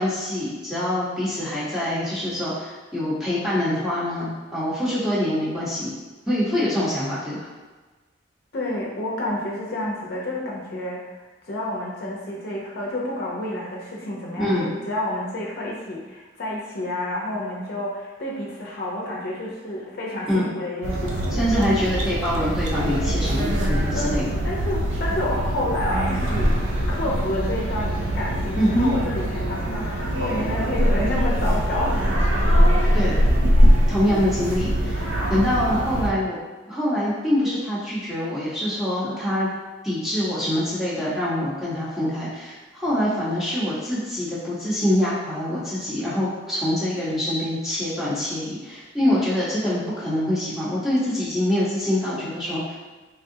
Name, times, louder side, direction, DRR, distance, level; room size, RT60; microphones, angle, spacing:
voice 1, 0.0-5.9 6.3-7.5 14.4-14.8 20.3-20.5 21.3-24.4 28.6-28.9 32.9-33.2 33.9-35.0 35.3-36.4 36.7-39.5 39.8-52.8, left 1 dB, ahead, -10 dB, 0.9 m, -25 dB
voice 2, 8.5-21.4 23.9-26.5 26.9-32.1 32.7-33.2 33.7-34.2 39.0-39.2, left 1 dB, 55° left, -4 dB, 0.6 m, -30 dB
sound 1, 20.8-36.1, equal, 85° right, 0.5 m, -22 dB
3.5 x 2.4 x 2.6 m, 1.3 s
head